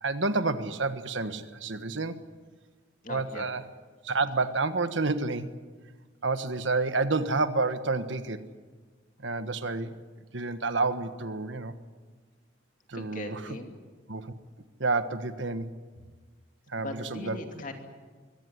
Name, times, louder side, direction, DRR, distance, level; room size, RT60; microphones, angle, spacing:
voice 1, 0.0-2.2 3.1-3.6 4.0-5.6 6.2-8.4 9.2-10.0 10.3-11.7 12.9-13.4 14.1-14.3 14.8-15.7 16.7-17.4, right 3 dB, 80° right, 11 dB, 1.4 m, -29 dB
voice 2, 3.0-3.5 12.9-13.7 16.8-17.7, left 2 dB, 40° left, 4 dB, 2.7 m, -39 dB
24.0 x 17.5 x 9.7 m, 1.5 s
head